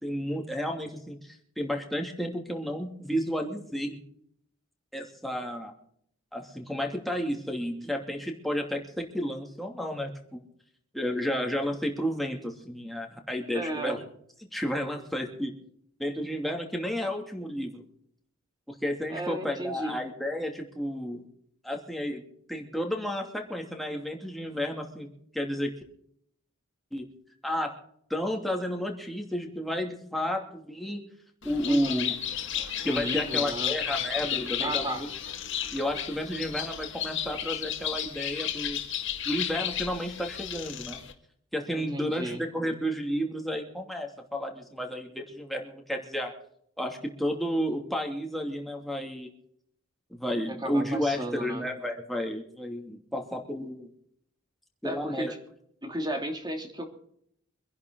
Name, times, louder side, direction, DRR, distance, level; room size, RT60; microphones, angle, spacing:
voice 1, 0.0-4.0 4.9-5.7 6.3-10.4 10.9-14.0 14.5-15.5 16.0-17.8 18.7-21.2 21.6-22.2 22.5-25.1 25.3-25.7 26.9-27.1 27.4-27.7 28.1-31.0 31.4-32.1 32.8-35.1 35.7-38.8 39.2-41.0 41.5-46.3 46.8-49.3 50.1-53.9 54.8-55.3, equal, ahead, 1 dB, 2.6 m, -32 dB
voice 2, 13.5-14.0 19.1-20.0 31.6-32.1 32.9-33.8 34.4-35.1 41.7-42.4 50.5-51.6 54.8-55.4 55.8-56.9, right 1 dB, 20° right, 4 dB, 2.8 m, -34 dB
Bird, 31.4-41.1, left 10 dB, 60° left, 2.0 m, -33 dB
25.0 x 11.0 x 3.9 m, 0.67 s
head